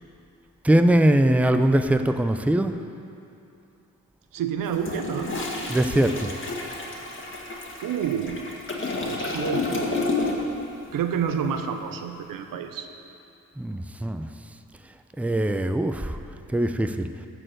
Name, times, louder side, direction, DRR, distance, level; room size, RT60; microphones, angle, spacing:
voice 1, 0.6-2.8 5.7-6.3 13.6-14.3 15.2-16.2 16.5-17.1, right 1 dB, 5° right, 8 dB, 0.6 m, -21 dB
voice 2, 4.3-5.4 7.5-8.5 9.0-10.0 10.9-12.9, right 7 dB, 80° right, 7 dB, 0.8 m, -29 dB
Toilet flush, 4.6-10.6 10.9-11.2, left 2 dB, 35° left, 1.9 m, -30 dB
13.0 x 4.6 x 7.7 m, 2.7 s
supercardioid pair, 50°, 33 cm